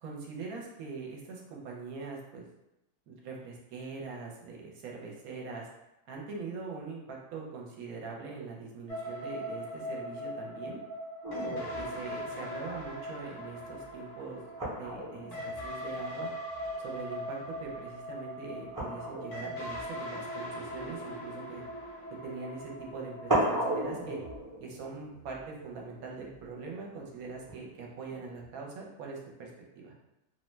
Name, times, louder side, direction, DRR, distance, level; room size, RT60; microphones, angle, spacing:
voice 1, 0.0-2.5 3.1-5.7 6.1-10.8 11.4-14.4 14.8-16.3 16.8-21.6 22.2-24.2 24.6-29.5 29.7-29.9, right 4 dB, 75° right, -1 dB, 1.0 m, -42 dB
sound 1, 8.9-24.4, equal, 60° left, 0.9 m, -40 dB
sound 2, 11.2-17.1 17.4-17.8 18.7-22.0 22.8-22.9 23.3-26.5 27.5-28.5, right 1 dB, 20° right, 0.6 m, -37 dB
2.6 x 2.1 x 3.1 m, 0.88 s
omnidirectional pair, 1.6 m